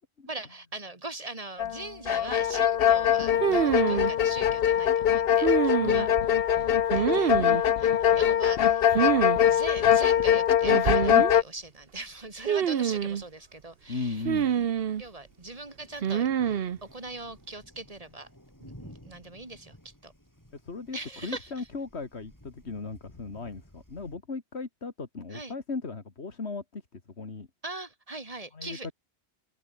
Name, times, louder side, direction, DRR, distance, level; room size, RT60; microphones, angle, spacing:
voice 1, 0.3-6.1 6.5-8.9 9.3-14.7 15.0-18.3 18.6-20.1 20.9-21.7 25.3-25.5 27.6-28.9, right 2 dB, 35° right, 2.1 m, -41 dB
sound 1, 1.6-1.8 2.1-11.4, left 10 dB, 65° left, 0.9 m, -23 dB
sound 2, 3.4-4.1 5.4-6.2 6.9-7.6 8.9-9.4 9.6-9.7 10.6-11.3 12.5-13.2 14.3-15.0 16.0-16.8, right 8 dB, 65° right, 1.0 m, -26 dB
voice 2, 5.8-6.2 13.9-14.5 20.6-27.5 28.5-28.9, left 4 dB, 85° left, 2.5 m, -37 dB
sound 3, 11.5-24.2, equal, 15° left, 7.8 m, -55 dB
omnidirectional pair, 1.1 m